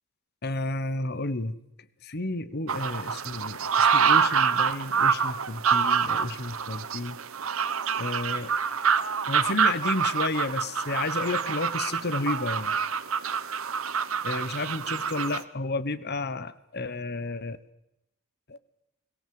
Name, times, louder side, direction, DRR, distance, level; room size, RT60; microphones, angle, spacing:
voice 1, 0.4-1.6 2.0-7.2 8.0-8.5 9.3-12.7 14.2-17.6 18.5-18.6, left 2 dB, 50° left, 15 dB, 1.2 m, -31 dB
sound 1, 2.7-15.4, right 6 dB, 75° right, 1.1 m, -26 dB
22.0 x 18.5 x 7.8 m, 0.84 s
head